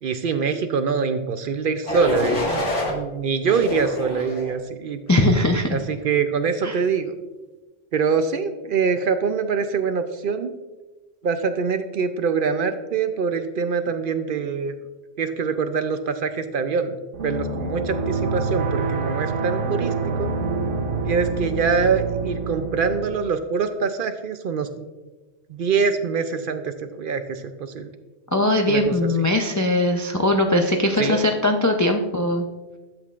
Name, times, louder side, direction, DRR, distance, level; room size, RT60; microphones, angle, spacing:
voice 1, 0.0-5.0 5.7-7.1 7.9-10.5 11.2-14.7 15.2-17.0 17.2-20.3 21.1-24.9 25.5-27.9 28.7-28.9 31.0-31.2, right 5 dB, 60° right, 8 dB, 0.6 m, -24 dB
sound 1, 1.9-2.9 3.5-4.5 5.1-5.5, left 1 dB, 75° left, 2.0 m, -27 dB
voice 2, 5.1-5.7 6.6-6.8 28.3-32.5, left 1 dB, 25° left, 3 dB, 0.4 m, -20 dB
sound 2, 17.1-23.1, right 4 dB, 80° right, 1.2 m, -26 dB
12.0 x 7.5 x 2.4 m, 1.2 s
omnidirectional pair, 1.2 m